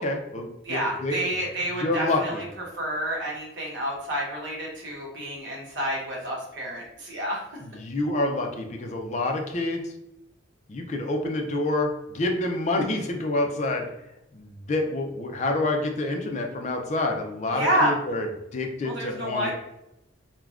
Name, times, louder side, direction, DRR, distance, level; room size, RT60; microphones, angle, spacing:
voice 1, 0.0-1.2 1.7-2.4 7.6-9.8 10.7-13.9 14.3-18.3 18.5-19.5, left 2 dB, 35° left, 2 dB, 0.4 m, -27 dB
voice 2, 0.6-2.4 2.7-7.5 17.5-17.9 18.8-19.5, equal, 65° right, -3 dB, 0.9 m, -29 dB
3.3 x 2.1 x 2.4 m, 0.88 s
head